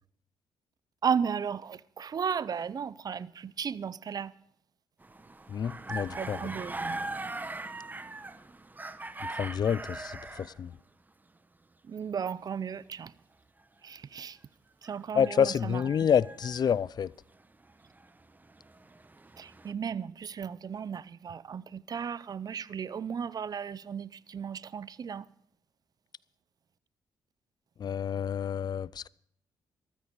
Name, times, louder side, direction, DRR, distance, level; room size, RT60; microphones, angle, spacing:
voice 1, 1.0-4.3 6.2-7.0 11.8-13.1 13.8-14.4 14.8-15.8 19.4-25.3, right 7 dB, 45° right, 0.6 m, -35 dB
sound 1, 5.0-10.6 14.8-16.8 17.6-19.7, right 2 dB, 20° right, 0.9 m, -41 dB
voice 2, 5.5-6.4 9.3-10.7 15.1-17.1 27.8-29.1, left 8 dB, 50° left, 0.4 m, -28 dB
14.0 x 13.5 x 4.7 m
supercardioid pair, 65°, 9 cm